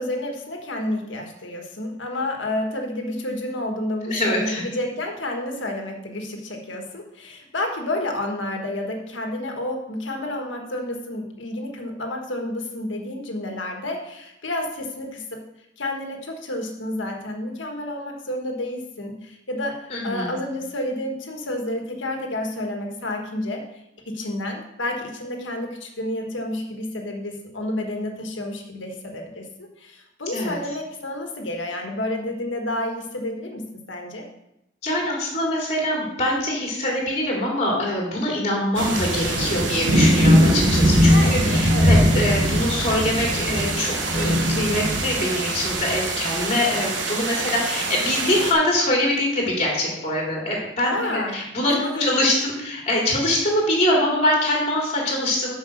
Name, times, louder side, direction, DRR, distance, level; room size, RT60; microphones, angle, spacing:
voice 1, 0.0-15.4 15.8-23.6 24.1-34.3 41.1-42.0 50.9-51.4 51.7-52.2, left 1 dB, 90° left, 2 dB, 1.6 m, -30 dB
voice 2, 4.0-4.6 19.9-20.3 30.3-30.6 34.8-55.5, left 1 dB, 35° left, -2 dB, 2.7 m, -24 dB
sound 1, 38.7-48.5, equal, 75° right, 1.2 m, -21 dB
7.9 x 5.2 x 6.5 m, 0.84 s
head